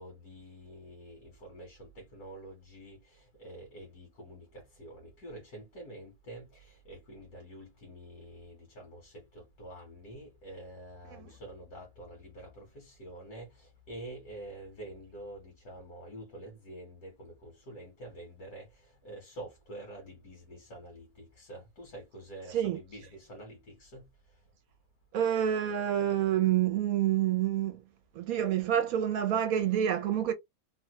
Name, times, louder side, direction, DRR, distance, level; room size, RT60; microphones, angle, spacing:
voice 1, 0.0-24.1, right 1 dB, 90° left, 2.0 m, -47 dB
voice 2, 25.1-27.8 28.1-30.3, right 10 dB, 75° right, 1.0 m, -28 dB
3.7 x 2.2 x 3.0 m
omnidirectional pair, 1.6 m